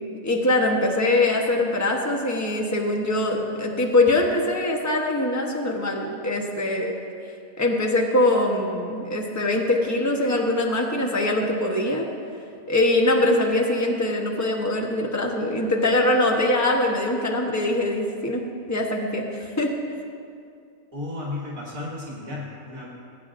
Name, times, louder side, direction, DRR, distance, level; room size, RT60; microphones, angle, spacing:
voice 1, 0.2-6.9 7.6-12.1 12.7-18.4 18.7-19.7, left 1 dB, 15° left, 0 dB, 0.9 m, -23 dB
voice 2, 20.9-22.9, left 2 dB, 65° right, -4 dB, 2.1 m, -33 dB
21.0 x 8.8 x 2.5 m, 2.4 s
omnidirectional pair, 1.6 m